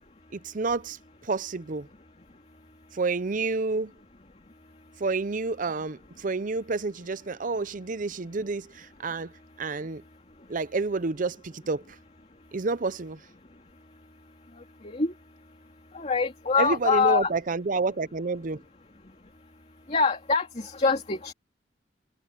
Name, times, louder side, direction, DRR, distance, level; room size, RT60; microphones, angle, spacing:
voice 1, 0.3-1.0 1.2-1.9 2.9-3.9 5.0-9.3 9.6-10.0 10.5-12.0 12.5-13.2 16.6-18.6, right 3 dB, 50° right, 0.7 m, -29 dB
voice 2, 15.9-17.3 19.9-21.3, left 4 dB, 40° left, 2.5 m, -24 dB
head